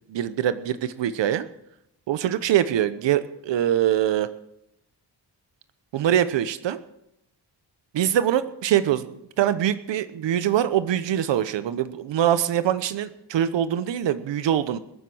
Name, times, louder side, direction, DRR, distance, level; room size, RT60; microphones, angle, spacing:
voice 1, 0.1-1.5 2.1-4.3 5.9-6.8 7.9-9.1 9.4-14.8, right 10 dB, 80° right, 13 dB, 0.9 m, -23 dB
21.0 x 7.7 x 7.0 m, 0.82 s
cardioid pair, 110°, 43 cm